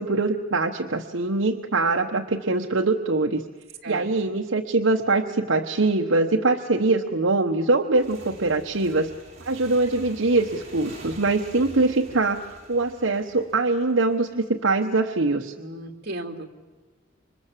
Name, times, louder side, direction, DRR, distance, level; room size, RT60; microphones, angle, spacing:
voice 1, 0.0-3.4 3.9-9.1 9.4-15.5, right 3 dB, 75° right, 4 dB, 1.1 m, -23 dB
Motorcycle / Engine, 7.9-14.3, right 2 dB, 35° right, 6.1 m, -45 dB
voice 2, 15.6-16.6, right 2 dB, 55° right, 4 dB, 2.7 m, -35 dB
28.0 x 25.0 x 7.5 m, 1.4 s
head